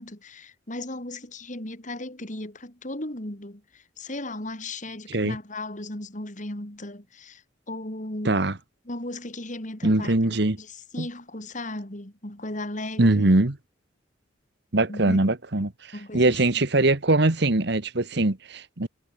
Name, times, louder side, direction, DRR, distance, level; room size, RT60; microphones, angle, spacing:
voice 1, 0.0-8.4 8.9-10.2 10.6-13.3 14.9-15.2 15.9-16.4, left 1 dB, 40° left, 3.7 m, -36 dB
voice 2, 8.2-8.6 9.8-10.6 11.0-11.1 13.0-13.5 14.7-15.7 16.1-18.9, right 2 dB, 60° right, 1.5 m, -22 dB
head